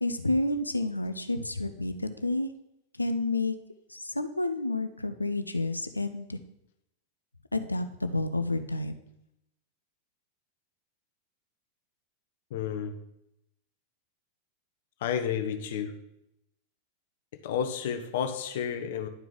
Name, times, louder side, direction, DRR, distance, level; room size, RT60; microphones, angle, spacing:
voice 1, 0.0-2.5 3.0-3.6 3.9-6.4 7.5-9.0, left 2 dB, 85° left, 10 dB, 0.5 m, -30 dB
voice 2, 12.5-12.9 15.0-15.9 17.4-19.1, left 8 dB, 55° left, 7 dB, 0.8 m, -31 dB
11.0 x 4.6 x 3.8 m, 0.82 s
figure-of-eight pair, 90°, 0 cm